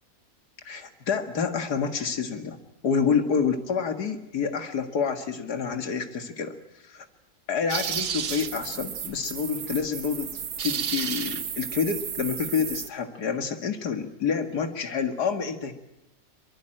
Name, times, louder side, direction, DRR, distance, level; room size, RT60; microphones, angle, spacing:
voice 1, 0.6-2.6 2.8-6.6 6.8-6.9 7.5-10.3 10.6-15.7, left 6 dB, 80° left, 6 dB, 2.4 m, -28 dB
sound 1, 7.7-12.9, right 8 dB, 75° right, 1.7 m, -32 dB
24.0 x 23.0 x 9.0 m, 0.88 s
omnidirectional pair, 1.7 m